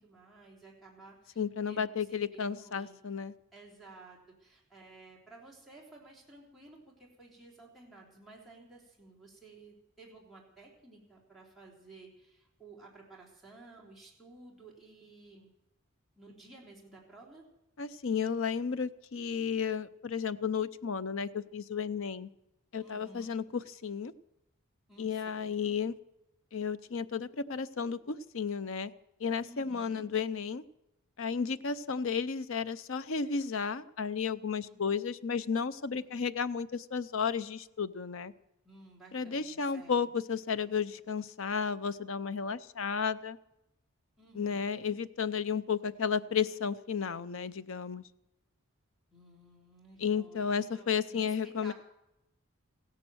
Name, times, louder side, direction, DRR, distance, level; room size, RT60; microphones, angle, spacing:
voice 1, 0.0-1.4 1.7-3.0 3.5-15.5 16.2-17.4 22.8-23.3 24.9-25.8 29.4-30.0 34.7-34.8 35.9-36.2 38.6-40.2 44.2-44.8 49.1-51.7, right 2 dB, ahead, -5 dB, 3.6 m, -54 dB
voice 2, 1.4-3.3 17.8-22.3 22.7-24.1 25.0-25.9 26.5-28.9 29.2-30.6 31.2-38.3 39.1-43.4 44.3-48.0 50.0-51.7, left 6 dB, 65° left, 14 dB, 0.6 m, -33 dB
16.0 x 10.5 x 7.7 m, 0.88 s
head